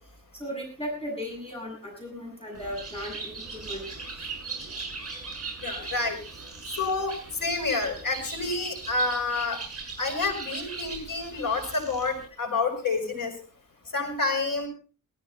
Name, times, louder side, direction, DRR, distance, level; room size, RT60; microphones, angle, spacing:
voice 1, 0.3-3.9 4.2-4.3 4.6-4.8, equal, 15° left, 0 dB, 7.6 m, -36 dB
Bird, 2.5-12.3, right 4 dB, 45° right, 6.5 m, -39 dB
voice 2, 5.6-6.2 6.8-9.6 10.0-13.3 13.9-14.7, left 3 dB, 75° left, 4 dB, 5.9 m, -28 dB
18.0 x 14.5 x 4.2 m, 0.37 s
wide cardioid pair, 135°, 33 cm